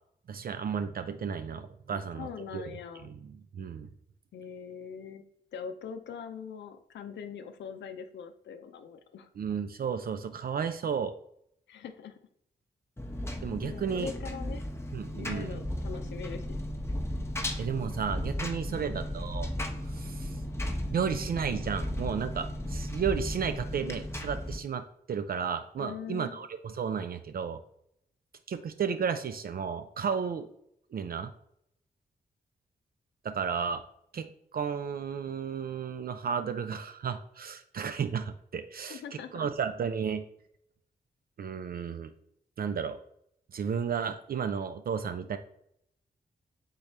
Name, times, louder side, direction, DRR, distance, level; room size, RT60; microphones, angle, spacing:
voice 1, 0.3-2.6 3.0-3.9 9.4-11.1 13.4-14.1 14.9-15.6 17.6-19.5 19.9-20.3 20.9-27.6 28.5-30.5 30.9-31.3 33.2-33.8 34.1-34.3 34.5-39.0 39.3-40.2 41.4-42.1 42.6-43.0 43.5-45.4, right 7 dB, 55° right, 9 dB, 0.4 m, -33 dB
voice 2, 1.9-3.1 4.3-5.2 5.5-9.3 11.7-12.2 13.6-14.7 15.1-16.4 18.7-19.0 25.8-26.4 38.9-39.5, left 7 dB, 80° left, 8 dB, 0.5 m, -42 dB
Engine, 13.0-24.6, left 1 dB, 15° left, 0.8 m, -35 dB
3.8 x 3.3 x 4.1 m, 0.71 s
supercardioid pair, 40°, 18 cm